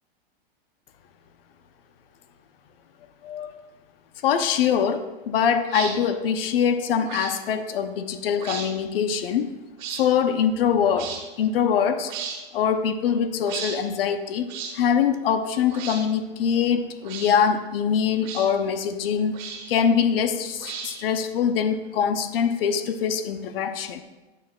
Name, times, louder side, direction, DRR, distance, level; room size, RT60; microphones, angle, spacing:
voice 1, 4.2-9.5 9.9-11.1 11.4-12.1 12.5-14.5 14.7-19.4 19.7-24.0, left 7 dB, 75° left, 10 dB, 0.7 m, -23 dB
sound 1, 5.7-5.9 7.0-7.3 8.3-8.7 9.8-10.0 10.9-11.2 12.1-12.4 13.4-13.8 14.5-14.7 15.7-16.0 17.0-17.3 18.2-18.5 19.3-19.8 20.6-21.1, right 6 dB, 50° right, 1.7 m, -34 dB
9.2 x 9.0 x 2.4 m, 1.2 s
supercardioid pair, 145°, 29 cm